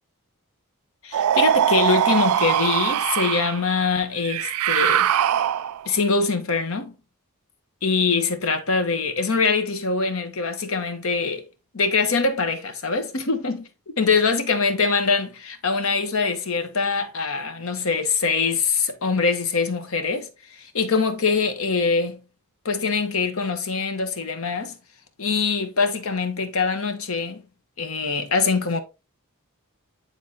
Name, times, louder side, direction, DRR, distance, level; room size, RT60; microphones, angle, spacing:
voice 1, 1.0-5.1 5.8-6.9 7.8-11.4 11.7-13.7 14.0-22.2 22.6-24.7 25.2-27.4 27.8-28.8, left 4 dB, 70° left, 1.0 m, -23 dB
sound 1, 1.1-3.6 4.2-5.9, right 10 dB, 90° right, 0.3 m, -21 dB
9.6 x 3.8 x 2.8 m
head